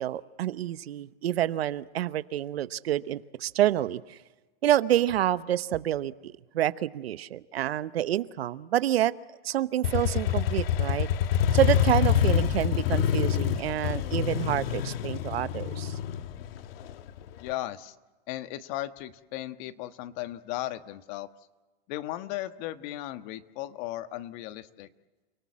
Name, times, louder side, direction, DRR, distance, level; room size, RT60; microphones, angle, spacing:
voice 1, 0.0-4.2 4.6-9.1 9.4-11.1 11.5-16.0, right 12 dB, 90° right, 14 dB, 1.0 m, -28 dB
Motorcycle, 9.8-17.5, left 9 dB, 70° left, 1.4 m, -26 dB
voice 2, 17.4-17.9 18.3-21.3 21.9-24.9, left 15 dB, 50° left, 10 dB, 1.4 m, -36 dB
30.0 x 18.5 x 7.5 m, 1.2 s
supercardioid pair, 135°, 30 cm